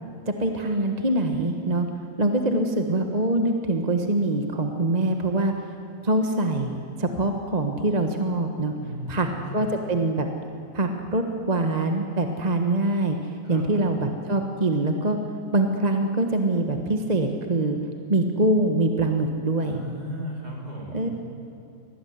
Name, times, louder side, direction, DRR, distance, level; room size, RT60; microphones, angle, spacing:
voice 1, 0.3-1.9 2.2-5.5 6.0-8.7 9.1-9.3 9.5-10.3 10.7-13.2 13.5-15.2 15.5-17.8 18.1-19.8 20.9-21.1, right 2 dB, 25° right, 4 dB, 1.4 m, -24 dB
voice 2, 8.8-9.7 13.4-13.7 19.6-21.1, equal, 55° right, -3 dB, 5.9 m, -36 dB
25.5 x 18.5 x 9.6 m, 2.6 s
omnidirectional pair, 1.9 m